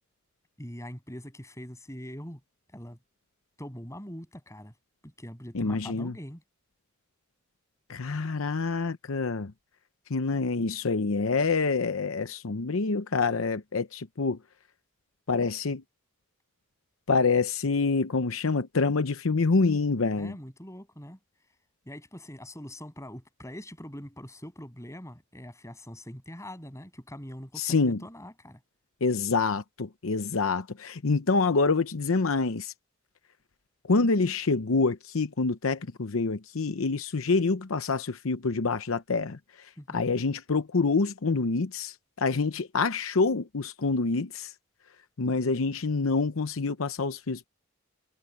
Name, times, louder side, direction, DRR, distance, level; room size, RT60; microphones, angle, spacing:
voice 1, 0.6-2.4 2.7-3.0 3.6-4.7 5.0-6.4 20.2-21.2 21.9-28.6 39.8-40.1, equal, 15° left, 7.7 m, -43 dB
voice 2, 5.5-6.1 7.9-9.5 10.1-14.4 15.3-15.8 17.1-20.3 27.6-28.0 29.0-32.7 33.9-39.4 39.9-44.5 45.2-47.5, left 4 dB, 75° left, 0.8 m, -26 dB
head